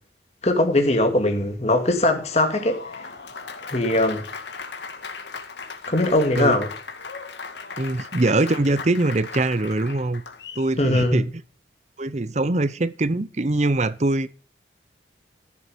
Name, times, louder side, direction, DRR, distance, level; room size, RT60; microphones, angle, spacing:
voice 1, 0.4-3.1 3.7-4.2 5.9-6.7 10.8-11.2, left 1 dB, 35° left, 2.3 m, -21 dB
Applause, 2.0-10.7, left 4 dB, 75° left, 1.9 m, -37 dB
voice 2, 7.8-10.2 10.6-11.3 12.0-14.3, right 2 dB, 40° right, 0.7 m, -22 dB
14.0 x 7.4 x 5.2 m
head